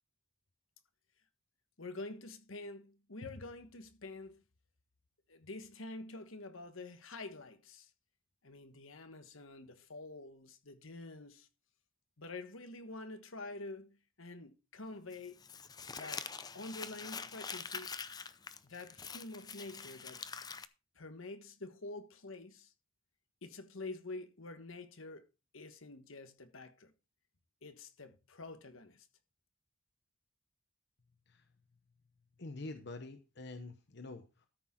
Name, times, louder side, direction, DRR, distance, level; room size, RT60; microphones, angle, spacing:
voice 1, 1.8-4.4 5.3-7.9 8.4-11.5 12.2-15.4 15.9-16.3 16.5-17.9 18.6-20.2 21.0-22.7 23.4-25.3 25.5-26.9 27.6-29.1, left 2 dB, 80° left, 1.3 m, -47 dB
Crumpling crinkling, 15.1-20.7, left 5 dB, 20° left, 0.5 m, -45 dB
voice 2, 32.4-34.5, left 2 dB, 55° left, 0.9 m, -46 dB
13.0 x 6.2 x 4.3 m
head